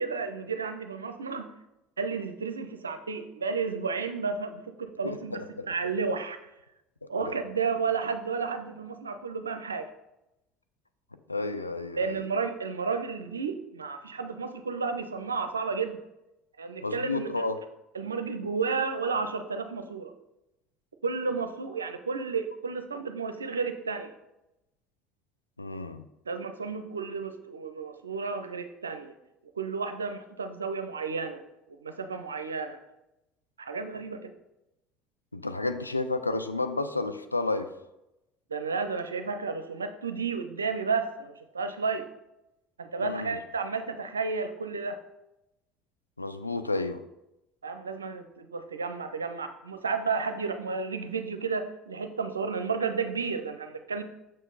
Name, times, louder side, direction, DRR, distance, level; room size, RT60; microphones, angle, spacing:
voice 1, 0.0-1.5 2.0-6.4 7.1-9.9 12.0-16.0 16.6-17.4 17.9-20.1 21.0-24.1 26.3-29.1 29.6-31.4 31.8-32.8 33.6-34.3 38.5-42.1 42.8-45.0 47.6-54.0, right 5 dB, 80° right, 8 dB, 0.6 m, -32 dB
voice 2, 5.0-5.7 7.0-7.3 11.3-12.2 16.8-17.6 25.6-26.0 33.9-34.0 35.3-37.7 43.0-43.4 46.2-47.0, left 3 dB, 90° left, 9 dB, 0.4 m, -31 dB
6.4 x 6.3 x 3.9 m, 0.92 s
figure-of-eight pair, 65°, 0 cm